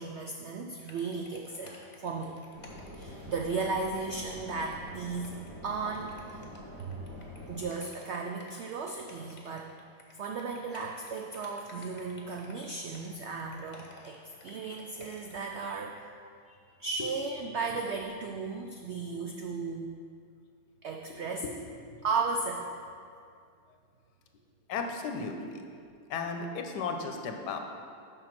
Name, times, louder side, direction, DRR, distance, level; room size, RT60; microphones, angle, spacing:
voice 1, 0.0-2.4 2.9-5.3 5.6-6.4 6.9-7.0 7.5-9.7 10.1-16.0 16.5-19.9 20.8-21.4 22.0-22.7, right 4 dB, 85° right, 2 dB, 0.6 m, -35 dB
sound 1, 0.9-15.5, left 3 dB, 30° left, 0.9 m, -53 dB
sound 2, 2.5-7.7, equal, 60° right, 2.2 m, -46 dB
voice 2, 21.1-21.5 21.9-22.0 24.7-25.7 26.1-27.6, left 4 dB, 80° left, 4 dB, 1.4 m, -35 dB
6.7 x 5.5 x 6.0 m, 2.3 s
omnidirectional pair, 1.8 m